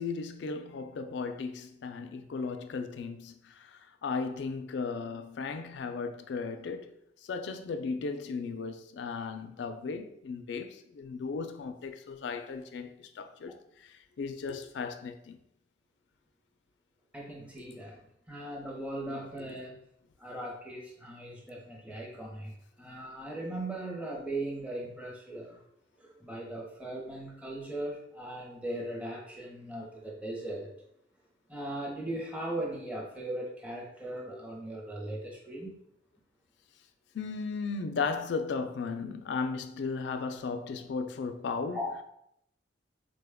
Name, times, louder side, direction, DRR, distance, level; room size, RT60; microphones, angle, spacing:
voice 1, 0.0-6.9 7.2-13.5 13.8-15.4 17.7-17.8 19.1-19.2 21.9-22.0 37.1-41.8, left 4 dB, 65° left, 0.3 m, -36 dB
voice 2, 17.1-18.0 18.3-19.8 20.2-25.6 26.0-30.7 31.5-35.8 41.7-41.9, right 1 dB, 5° right, 0.7 m, -38 dB
4.1 x 2.2 x 3.4 m
head